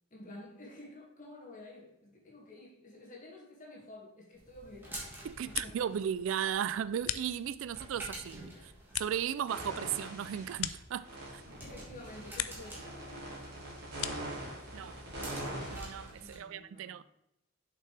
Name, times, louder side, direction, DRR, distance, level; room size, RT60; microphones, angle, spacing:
voice 1, 0.1-5.2 5.4-5.9 8.5-8.8 11.6-13.7 16.2-17.0, left 2 dB, 40° left, 1.9 m, -51 dB
sound 1, 4.3-16.4, right 1 dB, 10° right, 1.7 m, -50 dB
sound 2, 5.2-6.0 6.3-7.8 8.2-11.5 11.8-12.8 13.1-14.4, left 12 dB, 75° left, 0.4 m, -41 dB
voice 2, 5.2-11.4 14.7-15.0 15.7-17.0, right 9 dB, 65° right, 0.3 m, -36 dB
sound 3, 9.5-10.6 11.0-16.1, right 1 dB, 50° right, 2.6 m, -43 dB
7.0 x 5.7 x 3.3 m
head